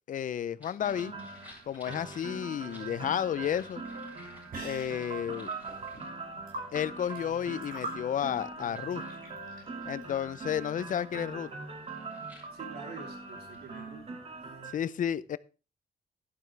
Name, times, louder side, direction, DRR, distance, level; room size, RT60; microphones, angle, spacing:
voice 1, 0.1-1.1 1.7-3.8 4.6-5.5 6.7-9.0 9.9-11.5 14.7-15.4, left 9 dB, 55° left, 17 dB, 0.6 m, -32 dB
sound 1, 0.6-13.8, left 1 dB, 10° right, 6.4 m, -58 dB
sound 2, 0.8-14.7, right 3 dB, 40° right, 2.1 m, -42 dB
sound 3, 2.7-10.6, right 1 dB, 60° right, 6.4 m, -46 dB
voice 2, 12.5-14.2, right 4 dB, 85° right, 3 dB, 3.6 m, -47 dB
12.0 x 12.0 x 3.3 m, 0.33 s
wide cardioid pair, 175°, 16 cm